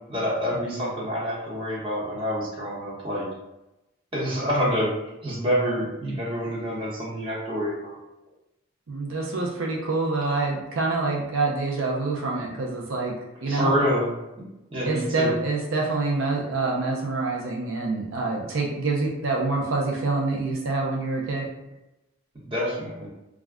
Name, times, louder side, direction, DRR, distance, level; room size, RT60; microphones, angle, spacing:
voice 1, 0.1-3.2 4.1-4.9 5.2-8.0 13.5-14.1 14.4-14.5 14.7-15.3 22.4-23.1, equal, 25° right, -6 dB, 0.8 m, -27 dB
voice 2, 8.9-13.7 14.8-21.5, right 3 dB, 75° right, -1 dB, 0.5 m, -26 dB
2.4 x 2.1 x 3.4 m, 0.94 s
head